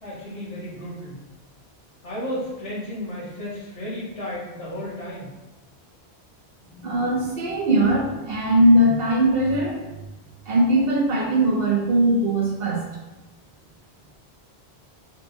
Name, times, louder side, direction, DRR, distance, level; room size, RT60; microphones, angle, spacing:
voice 1, 0.0-1.2 2.0-5.3, left 1 dB, 80° left, -6 dB, 1.8 m, -33 dB
voice 2, 6.7-9.8 10.5-12.9, right 1 dB, 60° right, -2 dB, 1.0 m, -20 dB
4.6 x 2.1 x 4.4 m, 1.0 s
omnidirectional pair, 1.2 m